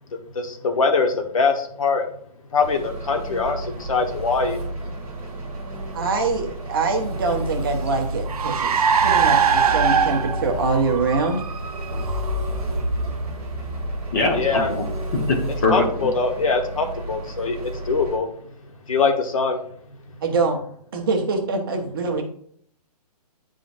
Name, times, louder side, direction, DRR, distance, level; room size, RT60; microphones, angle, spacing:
voice 1, 0.3-2.1 2.5-4.6 14.3-14.7 15.7-18.3 18.9-19.6, left 4 dB, 55° left, 5 dB, 1.1 m, -22 dB
Engine, 2.6-18.2, right 1 dB, 10° right, 1.9 m, -32 dB
voice 2, 5.9-8.7 9.0-11.4 20.2-20.6 20.9-22.2, right 3 dB, 35° right, 3 dB, 0.9 m, -24 dB
Car, 7.2-15.0, right 5 dB, 65° right, 0.7 m, -24 dB
voice 3, 14.1-14.8 15.3-15.8, left 3 dB, 25° left, 1 dB, 1.0 m, -22 dB
10.5 x 3.8 x 2.5 m, 0.62 s
hypercardioid pair, 170°, 21 cm